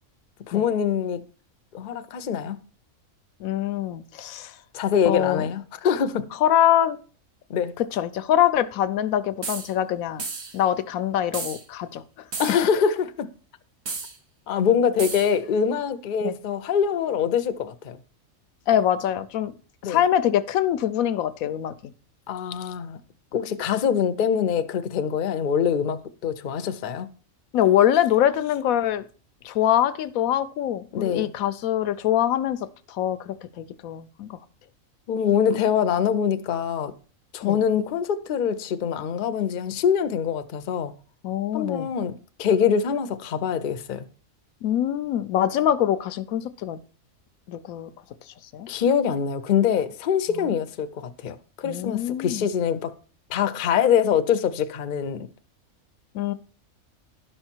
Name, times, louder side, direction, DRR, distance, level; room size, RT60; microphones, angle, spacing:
voice 1, 0.5-1.2 1.7-2.6 4.7-6.2 7.5-7.7 12.4-13.3 14.5-18.0 19.8-20.0 22.3-23.0 23.3-27.1 30.9-31.3 35.1-36.9 37.3-40.9 41.5-44.1 48.7-52.9 53.3-55.3, left 7 dB, 50° left, 0.6 m, -24 dB
voice 2, 3.4-4.5 5.0-5.4 6.4-7.0 7.8-10.2 10.5-12.0 16.2-16.3 18.7-19.5 19.8-21.9 27.5-29.1 29.4-32.6 32.9-34.4 37.4-37.6 41.2-41.9 44.6-46.8 47.5-47.9 48.5-48.7 50.3-50.5 51.6-52.5 56.1-56.3, left 11 dB, 85° left, 1.0 m, -24 dB
sound 1, 9.4-9.7 10.2-10.6 11.3-11.6 12.3-12.7 13.9-14.1 15.0-15.3, right 4 dB, 55° right, 1.3 m, -33 dB
11.5 x 5.6 x 4.4 m
omnidirectional pair, 1.4 m